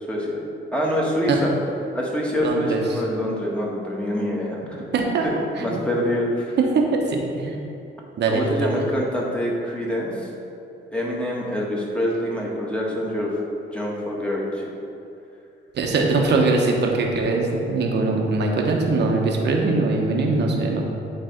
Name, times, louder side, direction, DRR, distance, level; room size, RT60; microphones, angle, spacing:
voice 1, 0.1-0.4 0.7-1.5 1.9-4.8 5.6-6.6 8.3-10.3 10.9-13.3 13.7-14.7, equal, 5° left, -4 dB, 1.7 m, -25 dB
voice 2, 2.4-2.8 4.9-5.2 5.6-5.8 6.7-7.6 8.2-8.4 15.7-20.8, right 3 dB, 60° right, 0 dB, 1.1 m, -21 dB
8.7 x 3.4 x 5.1 m, 2.7 s
cardioid pair, 90°, 20 cm